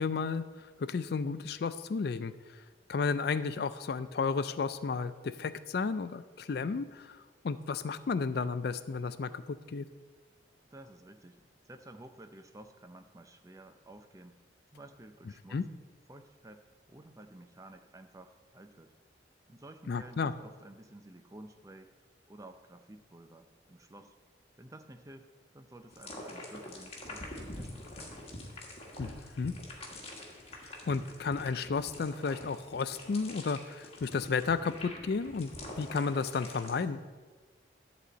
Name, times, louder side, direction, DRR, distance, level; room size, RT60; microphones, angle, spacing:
voice 1, 0.0-2.6 2.9-9.9 15.5-15.7 19.9-20.3 29.0-29.5 30.9-35.5 35.8-37.0, left 5 dB, 55° left, 13 dB, 0.4 m, -33 dB
voice 2, 10.7-14.4 14.7-15.6 16.1-16.6 16.9-18.9 19.5-21.9 22.3-24.1 24.6-25.3 25.5-28.2, right 1 dB, 15° right, 8 dB, 0.5 m, -52 dB
sound 1, 25.9-36.8, left 1 dB, 30° left, 1.5 m, -46 dB
11.0 x 4.2 x 7.8 m, 1.4 s
head